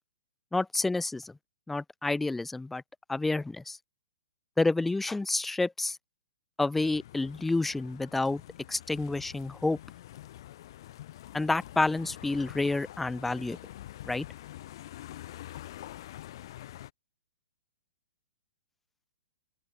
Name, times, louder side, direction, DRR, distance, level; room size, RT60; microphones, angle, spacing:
voice 1, 0.5-1.4 1.7-2.8 3.1-3.8 4.6-6.0 6.6-8.4 8.7-9.8 11.3-13.6 14.1-14.2, left 2 dB, 5° left, 0.5 m, -29 dB
sound 1, 6.7-16.9, left 13 dB, 55° left, 4.0 m, -46 dB
open air
hypercardioid pair, 140°, 3 cm